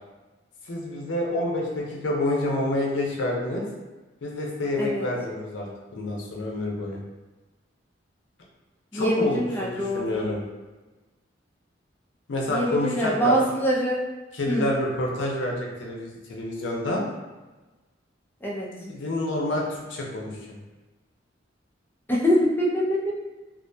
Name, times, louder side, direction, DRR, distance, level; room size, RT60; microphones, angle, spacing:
voice 1, 0.6-3.6 4.2-7.0 8.9-10.4 12.3-13.3 14.3-17.0 18.9-20.6, left 1 dB, 70° left, -1 dB, 0.6 m, -28 dB
voice 2, 8.9-10.3 12.5-14.0 14.5-14.7 18.4-18.7 22.1-23.1, equal, 10° left, -4 dB, 0.4 m, -24 dB
2.4 x 2.2 x 2.6 m, 1.2 s
head